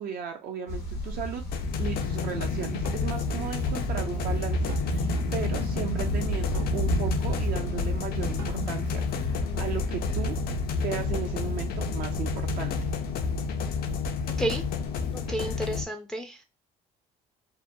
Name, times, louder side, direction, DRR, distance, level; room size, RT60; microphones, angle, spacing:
voice 1, 0.0-1.4 1.8-10.4 10.7-12.8, right 7 dB, 60° right, 3 dB, 0.5 m, -36 dB
sound 1, 0.7-15.6, equal, 90° left, 0.8 m, -32 dB
sound 2, 1.5-15.8, left 6 dB, 65° left, 0.4 m, -31 dB
Drum kit, 1.9-9.1, right 2 dB, 85° right, 1.0 m, -48 dB
voice 2, 15.1-16.4, right 1 dB, ahead, 4 dB, 0.3 m, -31 dB
2.8 x 2.1 x 2.5 m, 0.25 s
cardioid pair, 110°, 17 cm